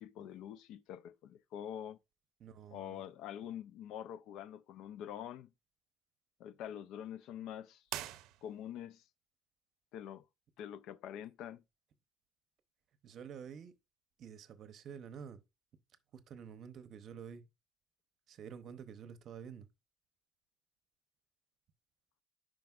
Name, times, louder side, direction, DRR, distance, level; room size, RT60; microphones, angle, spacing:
voice 1, 0.0-2.0 2.7-5.5 6.4-7.8 8.4-9.0 9.9-10.2 10.6-11.6, left 10 dB, 70° left, 0.4 m, -45 dB
voice 2, 2.4-3.0 13.0-13.8 14.2-15.4 16.1-17.5 18.3-19.7, right 7 dB, 50° right, 0.7 m, -49 dB
sound 1, 7.8-8.9, right 14 dB, 85° right, 0.5 m, -44 dB
9.3 x 5.0 x 2.4 m
cardioid pair, 150°, 0 cm